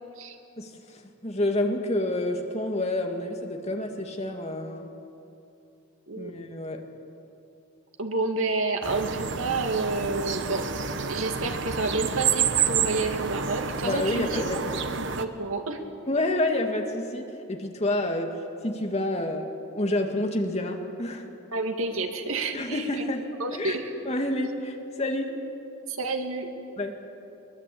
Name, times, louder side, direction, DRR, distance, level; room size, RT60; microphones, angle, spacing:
voice 1, 0.6-4.9 6.2-6.8 13.8-14.7 16.1-21.3 22.5-23.8 24.1-25.3 26.8-27.0, left 1 dB, 30° left, 3 dB, 2.0 m, -29 dB
voice 2, 8.0-10.7 11.1-14.4 15.0-15.8 21.5-23.0 23.4-23.9 25.9-26.5, right 3 dB, 75° right, 4 dB, 2.2 m, -29 dB
sound 1, 8.8-15.2, right 7 dB, 55° right, 1.1 m, -29 dB
23.0 x 21.5 x 8.6 m, 2.7 s
head